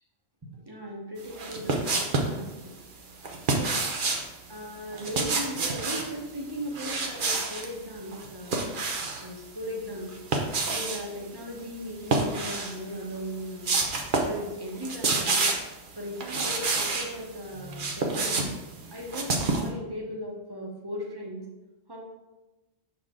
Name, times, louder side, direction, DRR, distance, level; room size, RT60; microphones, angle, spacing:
voice 1, 0.7-2.7 3.6-3.9 4.5-8.6 9.2-10.1 10.7-13.7 14.2-15.4 16.0-18.4 18.9-21.4 21.9-22.0, equal, 20° right, -2 dB, 1.0 m, -37 dB
sound 1, 1.3-2.4 3.2-4.3 4.9-6.1 6.7-7.7 8.1-9.3 10.1-11.0 12.0-12.8 13.2-13.3 13.6-14.4 14.7-15.7 16.2-17.1 17.5-19.7, right 3 dB, 50° right, 0.8 m, -28 dB
6.3 x 4.4 x 3.7 m, 1.1 s
omnidirectional pair, 1.3 m